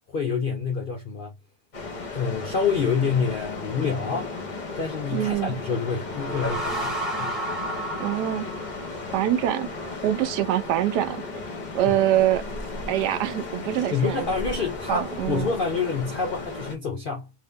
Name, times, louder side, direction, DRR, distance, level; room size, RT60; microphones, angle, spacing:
voice 1, 0.1-1.3 2.1-4.3 4.8-7.4 11.9-12.0 13.9-17.3, left 5 dB, 85° left, 0.4 m, -27 dB
sound 1, 1.7-16.8, left 3 dB, 35° left, 0.8 m, -35 dB
voice 2, 5.1-5.5 8.0-8.5 9.1-11.2 11.7-12.4 12.9-14.3 14.9-15.5, right 12 dB, 80° right, 1.1 m, -24 dB
sound 2, 5.9-9.4, right 1 dB, ahead, 1.0 m, -32 dB
2.8 x 2.7 x 3.5 m
omnidirectional pair, 1.8 m